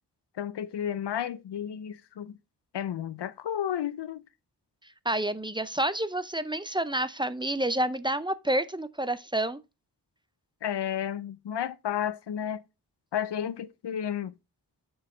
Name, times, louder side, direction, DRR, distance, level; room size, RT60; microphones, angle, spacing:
voice 1, 0.4-2.4 2.7-4.2 10.6-12.6 13.1-14.3, left 9 dB, 90° left, 0.6 m, -32 dB
voice 2, 5.1-9.6, right 1 dB, 10° right, 0.4 m, -29 dB
6.2 x 4.7 x 4.3 m
wide cardioid pair, 65°, 40 cm